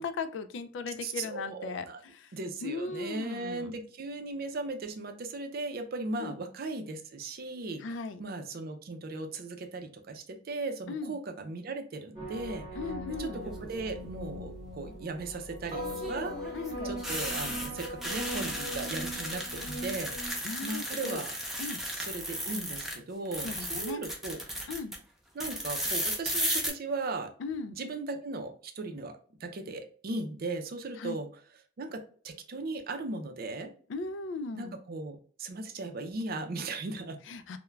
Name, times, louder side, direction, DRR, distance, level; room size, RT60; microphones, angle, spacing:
voice 1, 0.0-1.9 2.2-2.3 2.6-3.7 6.2-6.4 7.8-8.2 10.9-11.1 12.8-13.4 16.5-16.9 20.4-21.2 21.6-21.8 23.4-24.0 24.7-24.9 27.4-27.8 31.0-31.2 33.9-34.7 37.3-37.6, left 4 dB, 70° left, 10 dB, 0.3 m, -37 dB
voice 2, 1.0-2.0 2.3-12.7 13.1-16.3 16.8-21.3 21.9-24.4 25.3-27.3 27.8-29.1 29.4-33.7 34.5-37.2, right 3 dB, 55° right, 5 dB, 0.5 m, -37 dB
sound 1, 12.1-20.3, equal, 30° right, 1.0 m, -40 dB
sound 2, 13.3-13.8 15.7-23.0 23.2-25.0 25.4-26.7, equal, ahead, 0.5 m, -35 dB
2.3 x 2.1 x 3.1 m, 0.43 s
head